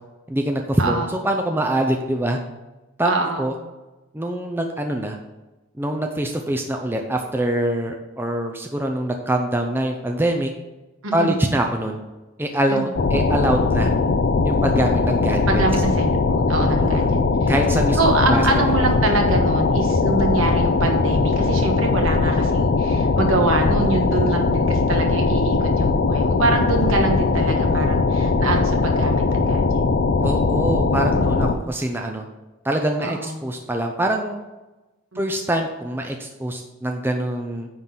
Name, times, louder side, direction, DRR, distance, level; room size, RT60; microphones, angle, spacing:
voice 1, 0.3-2.4 3.0-3.1 3.4-3.6 4.1-5.2 5.8-10.5 11.1-12.0 12.4-13.9 14.4-15.6 16.6-17.1 17.5-18.0 18.3-18.5 30.2-32.2 32.6-34.4 35.2-37.7, right 1 dB, 10° right, 3 dB, 0.5 m, -24 dB
voice 2, 0.8-1.1 3.0-3.5 11.0-11.4 12.7-12.8 15.5-17.0 17.4-17.5 18.0-29.9 31.1-31.7 33.0-33.3, right 3 dB, 65° right, 3 dB, 1.4 m, -24 dB
sound 1, 13.0-31.5, left 3 dB, 45° left, 0.4 m, -20 dB
9.5 x 3.8 x 5.9 m, 1.1 s
head